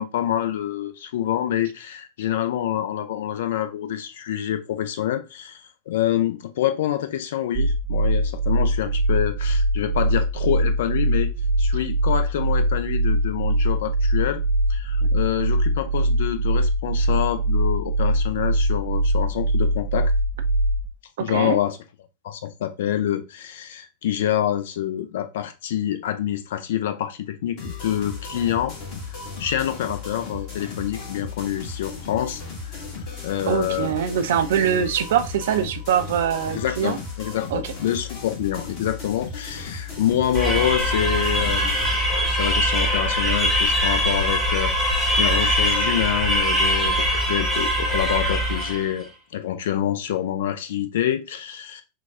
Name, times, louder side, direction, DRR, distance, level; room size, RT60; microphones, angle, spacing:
voice 1, 0.0-5.6 5.9-11.3 11.6-14.4 14.7-20.1 21.2-21.8 22.2-28.7 29.4-32.4 32.7-32.8 33.2-34.1 36.5-41.7 42.1-51.8, left 11 dB, 55° left, 0.4 m, -26 dB
sound 1, 7.5-20.9, right 1 dB, 20° right, 0.8 m, -22 dB
voice 2, 21.2-21.6 33.5-37.0 37.5-37.7, right 9 dB, 55° right, 0.4 m, -23 dB
sound 2, 27.6-41.9, left 4 dB, 40° left, 1.4 m, -35 dB
sound 3, 40.3-48.9, equal, 5° left, 0.9 m, -22 dB
5.9 x 2.2 x 2.3 m
figure-of-eight pair, 90°, 0 cm